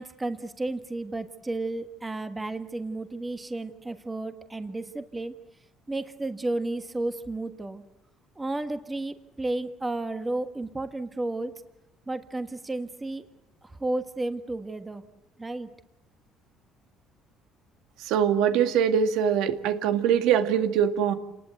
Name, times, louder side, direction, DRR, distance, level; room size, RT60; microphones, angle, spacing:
voice 1, 0.0-5.3 5.9-7.8 8.3-11.5 12.1-13.2 13.6-15.0 15.4-15.7, right 2 dB, 10° right, 8 dB, 1.5 m, -32 dB
voice 2, 18.0-21.1, right 8 dB, 80° right, 8 dB, 2.1 m, -23 dB
29.5 x 20.0 x 8.0 m, 0.89 s
cardioid pair, 165°, 0 cm